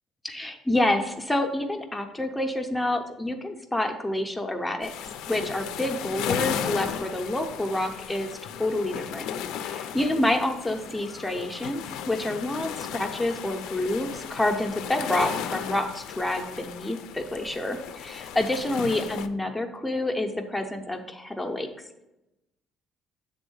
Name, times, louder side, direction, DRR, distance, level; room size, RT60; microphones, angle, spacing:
voice 1, 0.2-8.3 8.6-9.2 9.6-21.7, left 1 dB, 5° left, 4 dB, 0.6 m, -28 dB
sound 1, 4.8-19.3, left 9 dB, 80° left, 0.4 m, -35 dB
7.7 x 3.5 x 5.4 m, 0.93 s
cardioid pair, 165°, 0 cm